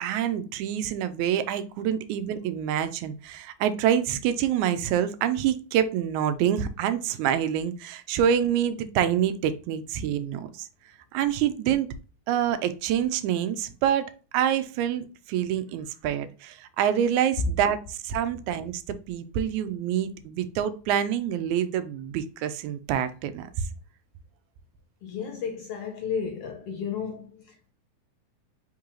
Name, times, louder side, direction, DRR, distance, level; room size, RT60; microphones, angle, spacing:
voice 1, 0.0-10.7 11.1-11.9 12.3-18.8 19.1-23.7, right 9 dB, 80° right, 1.9 m, -26 dB
voice 2, 25.0-27.7, left 7 dB, 75° left, 1.4 m, -33 dB
4.7 x 3.7 x 3.0 m
omnidirectional pair, 3.4 m